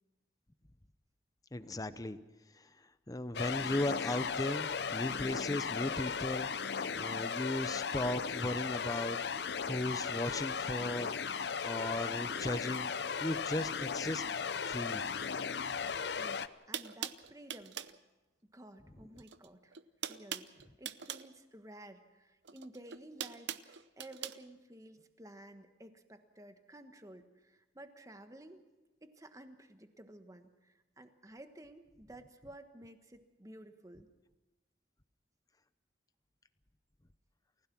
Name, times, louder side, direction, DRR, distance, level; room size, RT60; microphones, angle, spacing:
voice 1, 1.5-2.2 2.5-11.2 11.6-12.9 13.2-14.2 14.7-15.1, left 1 dB, 20° left, 13 dB, 0.8 m, -37 dB
sound 1, 3.3-16.5, left 6 dB, 65° left, 0.6 m, -36 dB
voice 2, 16.2-17.8 18.5-28.6 29.0-34.1, right 1 dB, 20° right, 7 dB, 1.3 m, -53 dB
sound 2, 16.2-16.3 16.7-18.0 19.2-19.5 19.7-21.3 22.4-24.4, right 9 dB, 75° right, 0.7 m, -42 dB
29.0 x 16.5 x 6.1 m, 1.1 s
head